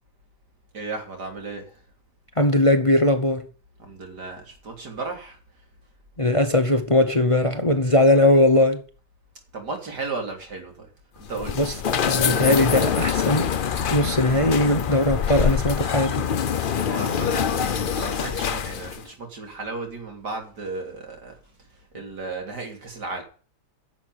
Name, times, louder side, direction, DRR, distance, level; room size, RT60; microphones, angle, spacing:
voice 1, 0.7-1.8 3.8-5.4 9.5-10.9 11.3-11.6 16.8-21.3 21.9-23.2, right 3 dB, 90° right, 3.7 m, -34 dB
voice 2, 2.4-3.5 6.2-8.8 11.5-13.5 13.9-16.3, left 1 dB, 25° left, 0.9 m, -20 dB
sound 1, 11.2-19.1, left 7 dB, 55° left, 0.5 m, -25 dB
11.0 x 7.4 x 9.1 m
omnidirectional pair, 1.7 m